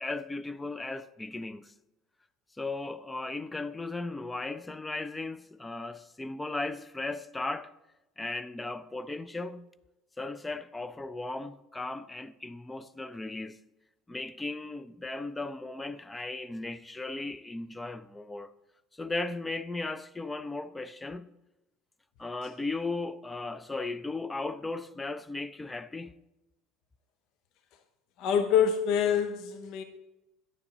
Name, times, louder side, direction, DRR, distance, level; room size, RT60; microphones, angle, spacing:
voice 1, 0.0-1.7 2.6-7.7 8.2-9.7 10.2-13.6 14.1-18.5 18.9-21.3 22.2-26.1, left 2 dB, 15° left, 0.4 m, -36 dB
voice 2, 28.2-29.8, left 8 dB, 55° left, 0.6 m, -26 dB
10.5 x 9.5 x 2.8 m
hypercardioid pair, 70°, 0 cm